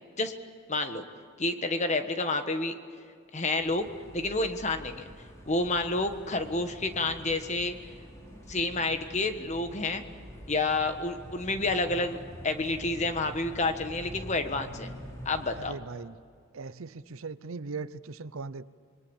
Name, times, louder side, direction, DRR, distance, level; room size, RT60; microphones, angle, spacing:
voice 1, 0.7-1.0 1.4-2.7 3.3-5.1 5.5-7.8 8.5-10.0 10.5-14.9 15.2-15.7, left 2 dB, 35° left, 1.4 m, -29 dB
sound 1, 3.6-15.7, equal, 15° left, 4.6 m, -46 dB
voice 2, 15.5-16.2 16.5-18.6, right 4 dB, 75° right, 0.7 m, -39 dB
27.5 x 22.0 x 7.2 m
head